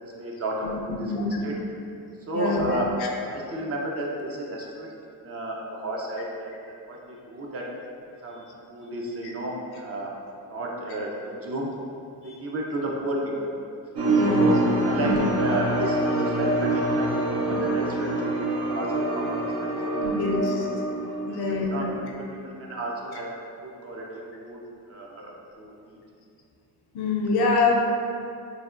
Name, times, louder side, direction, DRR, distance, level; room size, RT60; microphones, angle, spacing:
voice 1, 0.0-1.6 2.3-2.9 3.3-7.9 8.2-8.4 8.7-10.1 10.5-11.7 12.2-13.5 14.3-18.1 18.5-19.7 20.0-20.1 21.3-23.3 23.6-24.6 24.9-26.0, right 1 dB, 35° right, -2 dB, 0.4 m, -32 dB
voice 2, 1.0-1.4 2.3-2.7 3.0-3.1 12.3-12.4 14.1-14.6 14.9-15.2 17.5-17.6 20.0-20.7 21.3-21.9 26.9-27.7, left 3 dB, 65° left, -1 dB, 0.6 m, -25 dB
sound 1, 14.0-22.1, right 2 dB, 75° right, 0.7 m, -26 dB
3.3 x 2.1 x 2.4 m, 2.4 s
cardioid pair, 80°, 42 cm